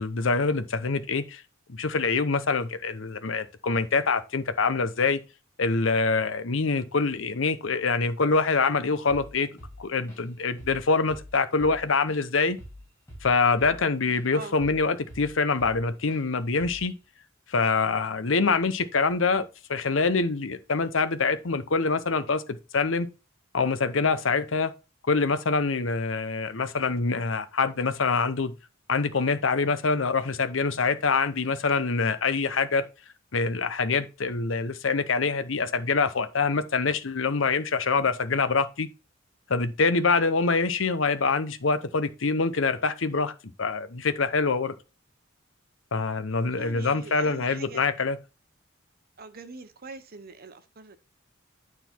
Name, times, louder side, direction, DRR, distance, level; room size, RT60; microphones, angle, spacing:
voice 1, 0.0-1.4 1.7-5.2 5.6-9.5 9.8-12.6 13.2-16.9 17.5-23.1 23.5-24.7 25.1-28.5 28.9-32.8 33.3-38.9 39.5-43.3 43.6-44.7 45.9-48.2, left 4 dB, 70° left, 0.8 m, -25 dB
Drum kit / Drum, 9.1-9.3 9.6-10.3 10.6-10.8 11.1-14.3 14.6-15.8 16.1-16.3 16.6-16.9, equal, 10° left, 4.3 m, -45 dB
voice 2, 46.5-47.8 49.2-51.0, right 4 dB, 50° right, 0.9 m, -42 dB
9.3 x 4.0 x 4.4 m
head